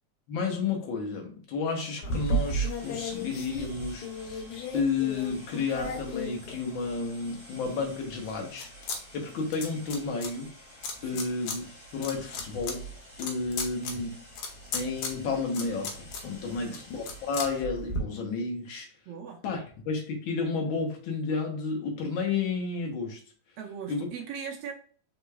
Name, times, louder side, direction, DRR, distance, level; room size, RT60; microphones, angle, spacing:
voice 1, 0.3-4.4 4.7-10.5 11.0-11.6 11.9-12.9 13.2-14.2 14.7-18.9 19.4-23.2 23.9-24.1, left 4 dB, 60° left, 1 dB, 1.3 m, -31 dB
sound 1, 2.0-7.1 7.6-9.0 9.2-10.3 10.8-11.6 11.9-18.0, equal, 80° left, 2.3 m, -35 dB
sound 2, 2.1-17.6, left 1 dB, 35° left, 2.5 m, -51 dB
voice 2, 16.5-16.8 19.1-19.4 23.6-24.7, right 7 dB, 80° right, 2 dB, 1.5 m, -39 dB
4.8 x 3.9 x 2.3 m, 0.44 s
omnidirectional pair, 3.4 m